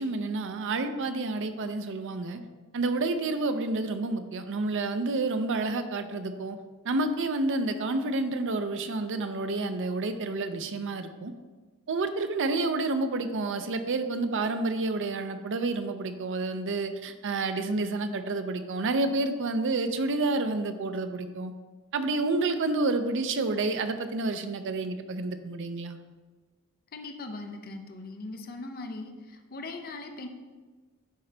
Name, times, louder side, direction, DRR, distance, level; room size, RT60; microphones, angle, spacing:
voice 1, 0.0-2.4 2.7-6.6 6.8-11.3 11.9-21.5 21.9-26.0, right 3 dB, 60° right, 9 dB, 0.5 m, -29 dB
voice 2, 26.9-30.3, left 2 dB, 45° left, 5 dB, 0.6 m, -40 dB
10.0 x 3.8 x 3.3 m, 1.4 s
head